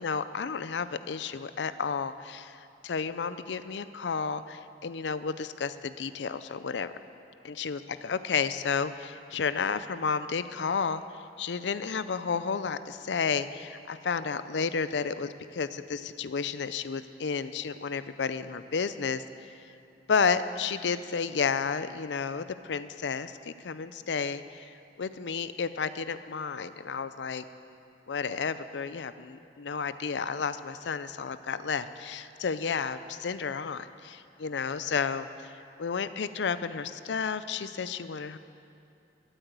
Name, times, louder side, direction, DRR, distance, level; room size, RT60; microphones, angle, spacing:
voice 1, 0.0-6.9 7.4-19.6 20.1-27.4 28.1-35.5 35.8-38.4, left 5 dB, 85° left, 13 dB, 0.5 m, -32 dB
13.5 x 8.9 x 8.0 m, 2.6 s
head